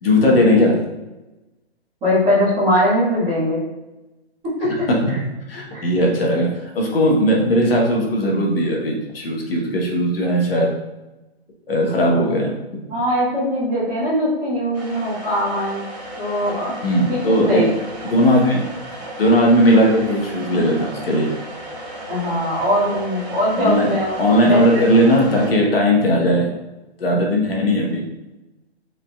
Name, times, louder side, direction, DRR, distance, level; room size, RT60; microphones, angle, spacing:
voice 1, 0.0-0.8 4.9-5.2 5.5-10.7 11.7-12.8 16.8-17.6 18.1-18.7 19.2-21.3 23.6-23.9 24.2-26.5 27.0-28.0, equal, 60° left, -1 dB, 1.2 m, -17 dB
voice 2, 2.0-3.6 5.7-5.8 12.9-15.8 16.2-16.7 17.1-17.7 22.1-24.1 24.4-24.6, equal, 10° right, -11 dB, 1.4 m, -21 dB
sound 1, 14.7-25.5, right 1 dB, 40° right, 1.3 m, -34 dB
5.5 x 3.8 x 2.3 m, 1.1 s
hypercardioid pair, 170°, 33 cm